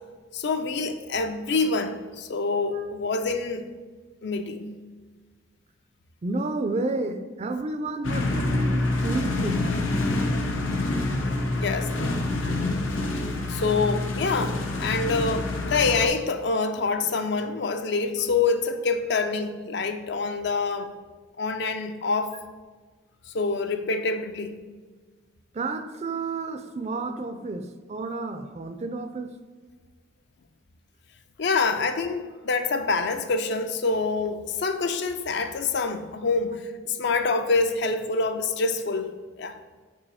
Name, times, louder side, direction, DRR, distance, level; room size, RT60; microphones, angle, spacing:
voice 1, 0.3-3.7 4.2-4.8 11.6-12.0 13.1-20.9 21.4-22.3 23.3-24.6 31.4-39.6, left 4 dB, 60° left, 8 dB, 0.5 m, -26 dB
voice 2, 6.2-9.7 25.5-29.3, right 3 dB, 35° right, 8 dB, 0.4 m, -31 dB
sound 1, 8.0-16.1, left 2 dB, 90° left, 0.8 m, -27 dB
5.5 x 4.7 x 4.2 m, 1.4 s
head